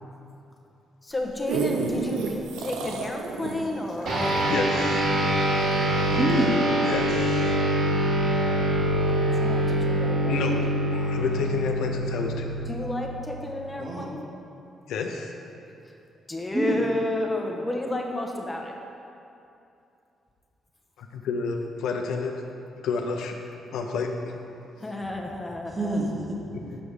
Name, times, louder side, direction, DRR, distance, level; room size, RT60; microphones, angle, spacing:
voice 1, 1.0-4.2 9.1-10.3 12.7-14.2 16.3-18.7 24.8-26.0, left 2 dB, 20° left, 0 dB, 1.1 m, -31 dB
sound 1, 1.1-5.8 6.3-6.4, right 4 dB, 85° right, 0.6 m, -31 dB
sound 2, 4.1-13.8, equal, 70° right, 1.3 m, -25 dB
voice 2, 4.2-5.0 6.8-7.6 10.3-12.5 14.9-15.3 21.0-22.4 22.8-23.3 23.7-24.1 26.5-26.8, left 5 dB, 80° left, 3 dB, 0.6 m, -30 dB
voice 3, 6.1-6.9 13.8-14.1 16.5-16.8 25.7-26.4, right 2 dB, 20° right, -2 dB, 1.6 m, -26 dB
7.5 x 5.2 x 4.8 m, 2.7 s
supercardioid pair, 65°, 0 cm